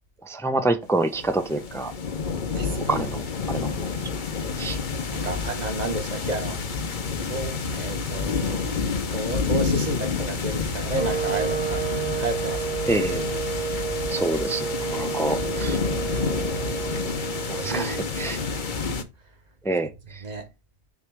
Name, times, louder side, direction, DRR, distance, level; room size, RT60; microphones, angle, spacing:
voice 1, 0.3-1.9 2.9-3.2 3.5-3.7 4.6-4.8 12.9-13.3 14.1-15.8 17.5-18.4 19.6-19.9, right 2 dB, 5° left, 0.5 m, -27 dB
sound 1, 1.0-19.0, left 5 dB, 45° left, 1.0 m, -29 dB
voice 2, 2.5-2.9 5.1-6.6 7.3-8.8 9.1-12.9 16.5-16.7 17.5-18.6 20.2-20.5, right 2 dB, 40° right, 1.3 m, -32 dB
sound 2, 10.9-18.9, right 7 dB, 60° right, 2.0 m, -31 dB
6.4 x 3.2 x 4.7 m
omnidirectional pair, 1.2 m